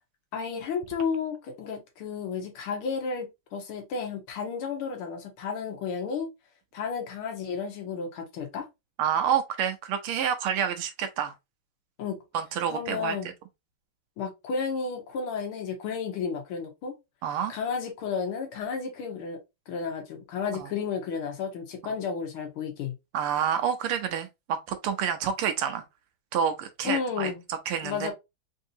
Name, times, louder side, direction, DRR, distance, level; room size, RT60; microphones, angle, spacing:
voice 1, 0.3-6.3 6.7-8.7 12.0-12.2 12.7-13.3 14.2-16.9 17.5-19.4 19.7-23.0 26.8-27.4 27.8-28.1, left 6 dB, 85° left, 1.9 m, -32 dB
voice 2, 9.0-11.3 12.3-13.2 17.2-17.5 20.5-20.7 23.1-25.8 26.3-28.1, right 8 dB, 85° right, 1.6 m, -28 dB
4.6 x 2.7 x 2.7 m
omnidirectional pair, 2.3 m